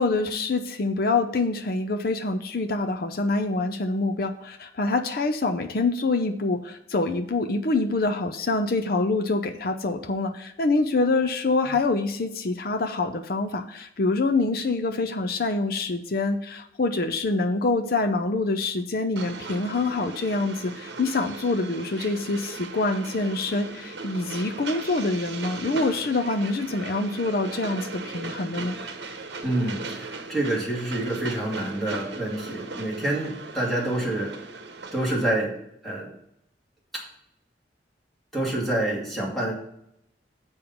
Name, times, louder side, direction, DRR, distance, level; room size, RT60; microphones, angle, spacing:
voice 1, 0.0-28.8, left 3 dB, 55° left, 6 dB, 0.6 m, -26 dB
Train, 19.2-35.3, right 3 dB, 75° right, 1.0 m, -38 dB
voice 2, 29.4-34.3 34.9-35.6 35.8-36.1 36.9-37.0 38.3-39.5, right 1 dB, ahead, -5 dB, 2.5 m, -27 dB
7.0 x 5.3 x 5.8 m, 0.76 s
head